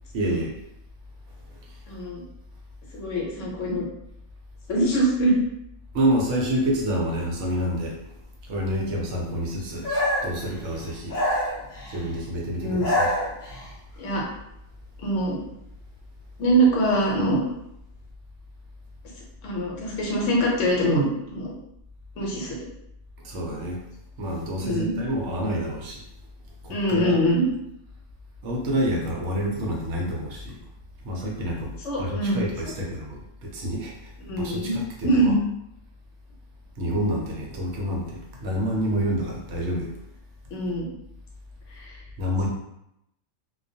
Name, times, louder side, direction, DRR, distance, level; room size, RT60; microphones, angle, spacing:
voice 1, 0.1-0.5 5.9-8.1 8.5-9.9 10.2-11.2 11.9-13.1 23.2-23.8 24.2-26.0 26.6-27.2 28.4-30.6 31.0-34.1 34.4-35.3 36.8-39.9 42.2-42.5, equal, 70° right, -2 dB, 0.8 m, -28 dB
voice 2, 1.9-2.2 2.9-3.8 4.7-5.3 12.6-12.9 14.0-14.2 15.0-15.4 16.4-17.4 19.4-21.0 21.3-21.5 22.2-22.6 24.6-24.9 26.7-27.5 31.8-32.4 34.2-34.8 35.0-35.4 40.5-40.9 41.7-42.0, right 1 dB, 70° left, -3 dB, 1.0 m, -23 dB
sound 1, 9.8-10.4 11.1-12.0 12.6-13.7, left 1 dB, 45° left, 0.8 m, -25 dB
2.3 x 2.2 x 2.6 m, 0.80 s
omnidirectional pair, 1.3 m